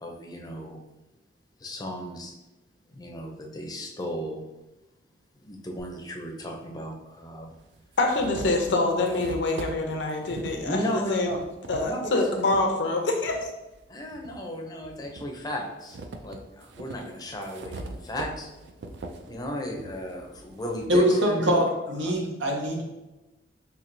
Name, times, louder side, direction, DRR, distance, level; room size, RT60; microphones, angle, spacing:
voice 1, 0.0-0.8 1.6-2.3 2.9-4.4 5.4-7.5 10.6-11.4 11.8-12.2 13.9-16.0 16.2-18.5 19.3-21.5 22.0-22.2, left 1 dB, 20° left, 1 dB, 0.5 m, -35 dB
sound 1, 5.8-5.9 7.0-7.1 7.5-12.7 13.2-14.4 14.8-21.0, right 2 dB, 70° right, 0.4 m, -42 dB
voice 2, 8.0-11.3 11.7-13.4, left 2 dB, 80° left, 3 dB, 0.6 m, -25 dB
voice 3, 20.9-22.8, equal, 90° right, 1 dB, 0.8 m, -23 dB
4.3 x 2.8 x 2.6 m, 1.0 s
head